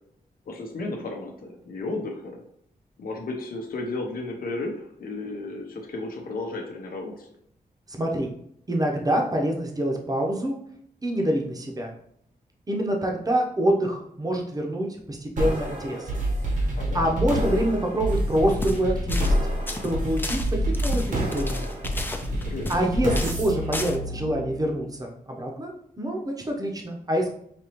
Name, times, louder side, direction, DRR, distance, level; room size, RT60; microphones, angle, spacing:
voice 1, 0.5-2.4 3.0-7.3 16.7-17.2 22.3-22.9, left 2 dB, 75° left, 1 dB, 0.8 m, -34 dB
voice 2, 7.9-8.3 8.7-10.6 11.0-11.9 12.7-16.1 16.9-19.5 19.8-21.7 22.7-25.1 25.4-25.7 26.0-27.3, right 1 dB, 25° right, 1 dB, 0.8 m, -26 dB
sound 1, 15.4-24.8, equal, 55° right, 1.1 m, -27 dB
sound 2, 18.5-18.8 19.1-19.4 19.7-22.9 23.1-23.4 23.7-24.0, left 2 dB, 15° left, 0.4 m, -34 dB
5.1 x 3.0 x 3.0 m, 0.71 s
wide cardioid pair, 145°, 15 cm